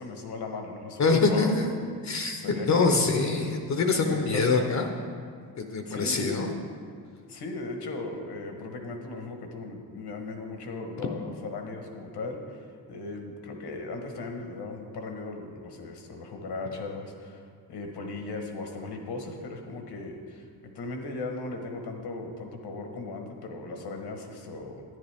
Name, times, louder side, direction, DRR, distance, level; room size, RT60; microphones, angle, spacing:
voice 1, 0.0-1.5 2.4-3.3 4.1-4.4 5.9-6.5 7.3-24.8, left 3 dB, 80° left, 4 dB, 1.3 m, -37 dB
voice 2, 1.0-1.7 2.0-2.4 2.7-4.9 5.6-6.5, left 4 dB, 45° left, 4 dB, 0.7 m, -24 dB
11.0 x 10.0 x 3.5 m, 2.1 s
wide cardioid pair, 160°, 39 cm